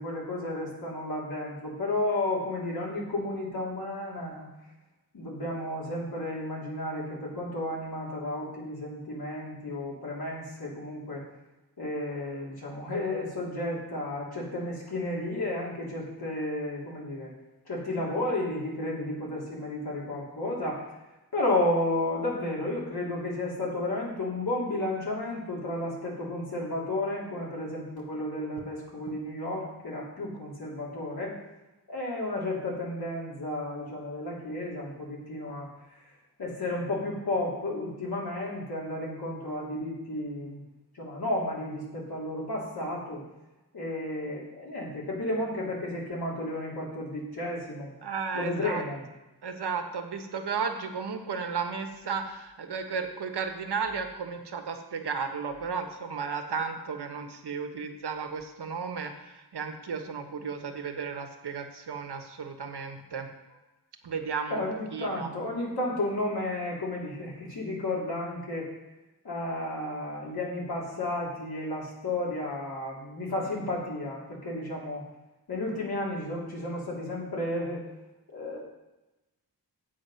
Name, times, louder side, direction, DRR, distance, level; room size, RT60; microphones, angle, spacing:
voice 1, 0.0-4.5 5.1-11.2 11.8-17.3 17.7-20.8 21.3-31.4 31.9-35.7 36.4-40.6 40.9-43.2 43.7-47.9 48.3-49.0 64.5-68.7 69.2-75.0 75.5-77.8 78.3-78.6, left 1 dB, 70° left, -4 dB, 3.5 m, -32 dB
voice 2, 48.0-48.8 49.4-63.3 64.0-64.6 64.9-65.3, right 5 dB, 85° right, 5 dB, 1.2 m, -34 dB
8.5 x 7.8 x 5.6 m, 1.0 s
wide cardioid pair, 95°, 39 cm